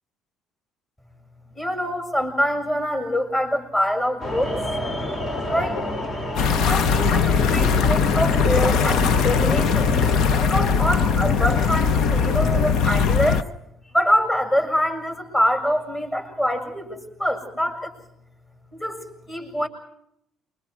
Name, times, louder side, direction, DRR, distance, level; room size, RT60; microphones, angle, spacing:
voice 1, 1.6-4.6 5.5-5.8 6.7-10.1 10.4-13.5 13.8-17.9 18.7-19.7, equal, 20° left, 3 dB, 7.4 m, -25 dB
sound 1, 4.2-12.6, left 1 dB, 40° left, 3.5 m, -29 dB
sound 2, 6.4-13.4, left 6 dB, 65° left, 1.0 m, -20 dB
28.5 x 25.0 x 4.8 m, 0.78 s
cardioid pair, 120°, 0 cm